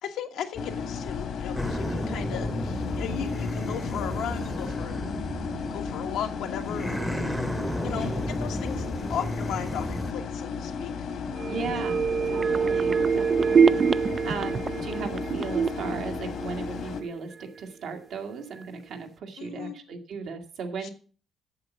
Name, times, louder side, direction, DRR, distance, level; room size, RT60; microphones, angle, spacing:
voice 1, 0.0-5.0 5.6-7.4 7.8-10.9 19.4-19.8 20.8-20.9, left 9 dB, 90° left, 4 dB, 1.4 m, -36 dB
sound 1, 0.5-17.0, left 6 dB, 70° left, 1.6 m, -34 dB
sound 2, 1.5-6.2 6.6-10.1, equal, 5° right, 0.8 m, -33 dB
voice 2, 7.9-8.3 11.4-20.9, right 5 dB, 75° right, 4 dB, 1.8 m, -37 dB
sound 3, 11.4-17.1 17.4-17.5, right 6 dB, 45° right, 0.4 m, -25 dB
8.6 x 7.0 x 7.1 m, 0.41 s
cardioid pair, 90°, 0 cm